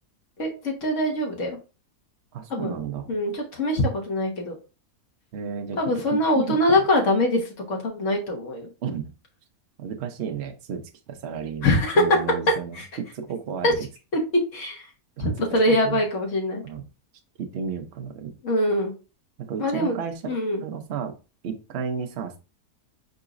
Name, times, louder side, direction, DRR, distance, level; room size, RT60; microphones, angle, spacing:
voice 1, 0.4-1.6 2.5-2.7 3.1-4.6 5.8-8.7 11.6-12.0 12.7-12.9 13.6-13.7 14.1-14.2 14.5-14.9 15.2-16.6 18.4-18.9 19.6-19.9 20.3-20.6, left 1 dB, 55° left, 0 dB, 1.7 m, -23 dB
voice 2, 2.3-3.1 5.3-5.8 6.1-6.8 8.8-9.1 9.8-10.8 11.1-12.8 13.1-13.9 15.2-15.3 15.7-16.0 16.6-16.8 17.4-18.3 19.4-20.3 20.6-21.1 21.4-22.4, right 6 dB, 55° right, 5 dB, 0.8 m, -32 dB
4.7 x 3.9 x 2.5 m, 0.31 s
omnidirectional pair, 1.6 m